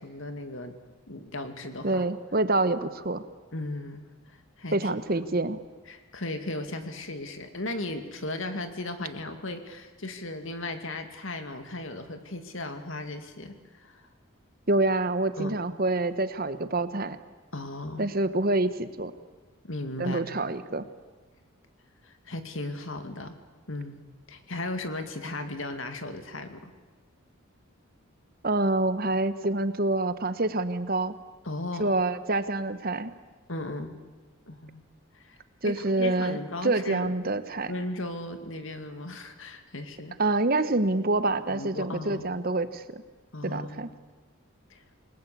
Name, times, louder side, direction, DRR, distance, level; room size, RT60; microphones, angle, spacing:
voice 1, 0.0-0.7 1.1-2.0 3.5-4.9 5.9-14.1 15.4-15.5 17.5-18.1 19.6-20.2 22.0-23.4 23.7-24.0 24.3-26.7 31.4-31.9 33.5-34.0 34.5-34.8 35.1-35.4 35.7-37.1 37.7-40.1 41.5-42.4 43.3-43.8 44.7-44.8, left 2 dB, 65° left, 8 dB, 2.4 m, -36 dB
voice 2, 1.8-3.2 4.7-5.6 14.7-17.2 18.0-19.1 20.0-20.9 28.4-31.1 31.8-33.1 35.6-37.7 40.2-43.0 43.4-43.9, right 2 dB, 40° right, 12 dB, 1.1 m, -27 dB
27.5 x 19.5 x 8.4 m, 1.3 s
head